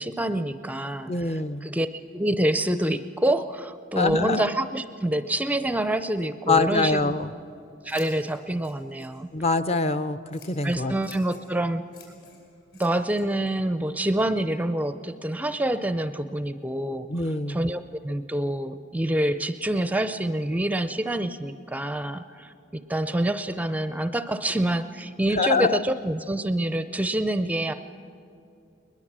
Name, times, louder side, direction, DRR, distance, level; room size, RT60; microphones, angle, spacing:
voice 1, 0.0-7.1 7.8-9.3 10.6-11.8 12.8-17.1 17.5-27.7, right 1 dB, 10° right, 11 dB, 0.5 m, -27 dB
voice 2, 1.1-1.7 3.9-4.5 6.5-7.3 9.3-10.9 17.1-17.7 25.3-25.8, left 3 dB, 30° left, 10 dB, 0.6 m, -24 dB
Scissors, 7.0-15.1, left 5 dB, 55° left, 5.1 m, -55 dB
21.0 x 21.0 x 7.4 m, 2.7 s
head